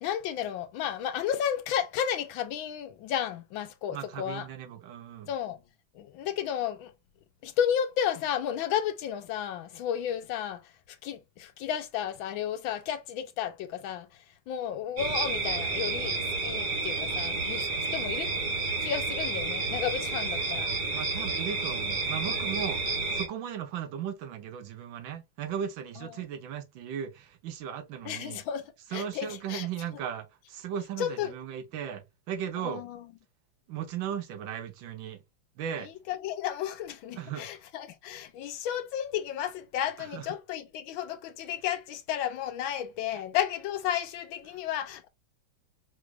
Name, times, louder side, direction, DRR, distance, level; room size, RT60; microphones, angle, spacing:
voice 1, 0.0-4.5 5.3-5.6 5.9-6.9 7.4-10.6 11.0-14.1 14.5-18.3 18.8-20.7 28.0-29.7 31.0-31.3 32.6-33.0 35.8-45.1, left 9 dB, 80° left, 1.5 m, -33 dB
voice 2, 3.9-5.3 20.9-28.4 28.9-32.8 33.7-35.2 35.6-35.9 37.2-37.5 40.0-40.3 44.5-44.6, right 9 dB, 75° right, 1.5 m, -37 dB
sound 1, 15.0-23.3, right 3 dB, 40° right, 0.6 m, -30 dB
4.8 x 2.4 x 3.1 m
omnidirectional pair, 2.2 m